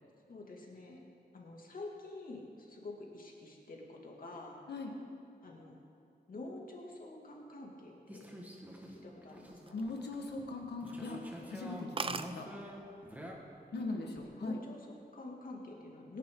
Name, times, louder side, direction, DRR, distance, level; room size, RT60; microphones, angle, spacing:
voice 1, 0.3-1.0 1.3-4.6 5.4-5.8 6.3-8.4 8.9-9.9 14.0-16.2, left 2 dB, 55° left, -1 dB, 2.5 m, -48 dB
sound 1, 8.1-13.3, equal, 10° right, 1.7 m, -48 dB
sound 2, 9.5-10.5 10.9-11.1 11.4-11.5 11.7-11.8 12.0-12.3 13.2-13.5 13.9-14.3, right 4 dB, 35° right, 0.5 m, -39 dB
voice 2, 9.7-12.5 13.7-14.6, left 3 dB, 80° left, 1 dB, 1.6 m, -40 dB
26.0 x 11.0 x 3.9 m, 2.6 s
wide cardioid pair, 140°, 17 cm